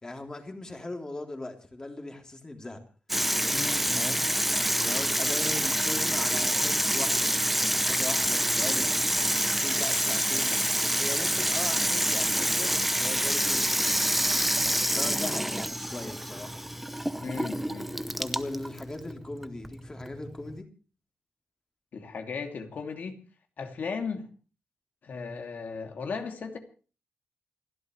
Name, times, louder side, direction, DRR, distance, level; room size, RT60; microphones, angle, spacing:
voice 1, 0.0-2.8 3.9-4.3 4.8-7.4 7.8-8.9 9.5-10.6 10.9-13.6 14.5-16.6 18.2-20.7, left 2 dB, 20° left, 3.3 m, -39 dB
Water tap faucet / Sink (filling or washing), 3.1-20.6, equal, 5° right, 0.7 m, -27 dB
voice 2, 3.5-4.3 17.2-18.2 21.9-23.1 23.6-24.3 25.0-26.6, left 5 dB, 60° left, 2.7 m, -36 dB
28.5 x 12.0 x 3.2 m
wide cardioid pair, 140°, 3 cm